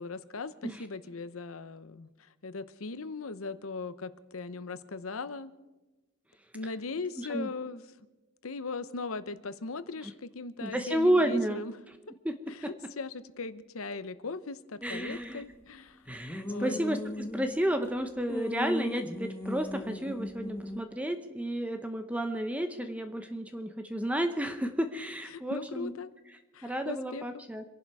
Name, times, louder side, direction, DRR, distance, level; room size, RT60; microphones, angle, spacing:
voice 1, 0.0-5.5 6.5-7.8 8.4-11.8 12.1-12.2 12.5-16.0 16.5-16.8 25.3-26.1 26.5-27.4, left 4 dB, 80° left, 13 dB, 0.8 m, -39 dB
voice 2, 7.2-7.5 10.6-11.6 12.2-12.3 12.6-12.7 14.8-15.4 16.1-17.0 17.3-25.9 26.6-27.6, right 1 dB, 5° right, 7 dB, 0.8 m, -31 dB
sound 1, 14.8-15.4 16.1-17.9 18.3-20.8, left 1 dB, 10° left, 1.1 m, -37 dB
26.5 x 11.0 x 4.8 m, 1.1 s
head